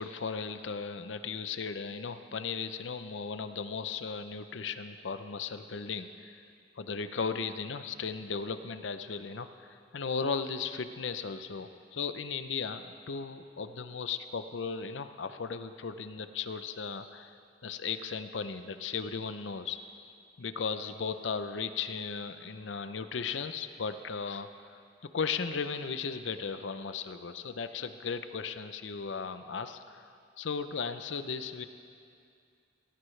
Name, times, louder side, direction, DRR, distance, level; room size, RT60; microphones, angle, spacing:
voice 1, 0.0-6.4 6.8-17.3 17.6-20.1 20.4-24.8 25.1-30.1 30.4-31.7, left 5 dB, 90° left, 10 dB, 0.6 m, -36 dB
17.5 x 14.5 x 3.3 m, 2.4 s
head